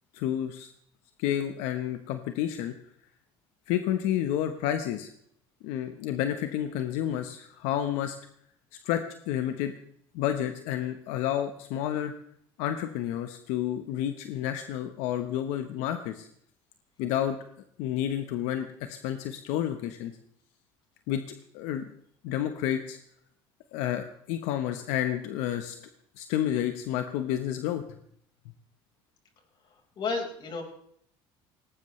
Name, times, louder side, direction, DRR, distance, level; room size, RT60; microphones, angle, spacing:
voice 1, 0.1-0.7 1.2-2.7 3.7-5.1 5.6-8.2 8.8-9.7 10.1-12.1 12.6-16.3 17.0-17.4 17.8-20.1 21.1-21.2 21.5-21.8 22.2-23.0 23.7-25.9 26.2-27.8, left 11 dB, 80° left, 8 dB, 1.1 m, -30 dB
voice 2, 29.7-30.6, left 4 dB, 45° left, 2 dB, 4.9 m, -32 dB
18.5 x 18.0 x 3.2 m, 0.68 s
cardioid pair, 120°, 11 cm